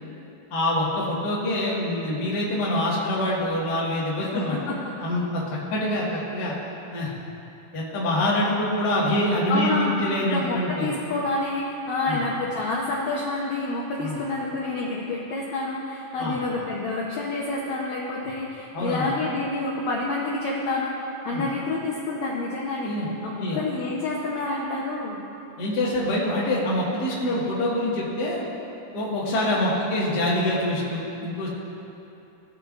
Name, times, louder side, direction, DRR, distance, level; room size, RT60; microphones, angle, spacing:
voice 1, 0.5-4.6 5.0-5.4 5.7-6.5 6.9-7.1 7.7-10.9 12.0-12.2 14.0-14.1 16.2-16.3 18.7-19.1 21.3-21.4 22.8-23.1 23.4-23.6 25.6-28.4 28.9-31.5, left 1 dB, 40° left, -7 dB, 1.5 m, -25 dB
voice 2, 4.2-4.9 9.5-10.0 10.2-22.9 23.2-25.2, left 2 dB, 80° left, -4 dB, 1.6 m, -28 dB
18.0 x 6.8 x 2.5 m, 2.9 s
omnidirectional pair, 4.3 m